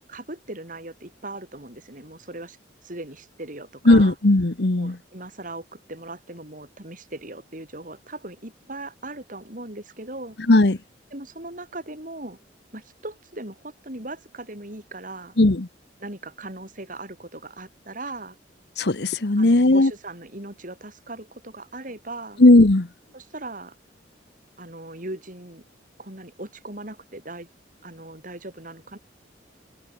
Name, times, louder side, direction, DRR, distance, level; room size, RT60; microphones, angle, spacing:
voice 1, 0.1-2.6 2.8-4.2 4.8-10.4 11.1-12.4 12.7-15.3 16.0-18.4 19.4-22.4 23.1-23.8 24.6-25.6 26.0-27.5 27.8-29.0, right 2 dB, 45° right, 6.4 m, -38 dB
voice 2, 3.9-5.0 10.5-10.8 15.4-15.7 18.8-19.9 22.4-22.9, left 2 dB, 60° left, 1.1 m, -16 dB
head